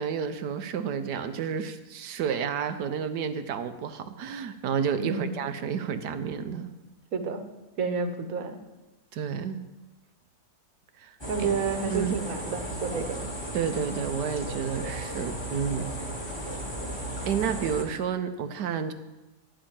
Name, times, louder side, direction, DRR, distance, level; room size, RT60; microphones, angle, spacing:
voice 1, 0.0-6.7 9.1-9.6 11.0-11.5 11.9-12.1 13.5-15.9 16.4-16.6 17.3-18.9, right 7 dB, 90° right, 9 dB, 1.5 m, -30 dB
voice 2, 5.0-5.4 7.1-7.4 7.8-8.6 11.3-13.2, right 5 dB, 60° right, 7 dB, 1.5 m, -30 dB
sound 1, 11.2-17.8, right 1 dB, 15° left, 1.8 m, -35 dB
11.5 x 7.5 x 8.8 m, 1.1 s
omnidirectional pair, 1.7 m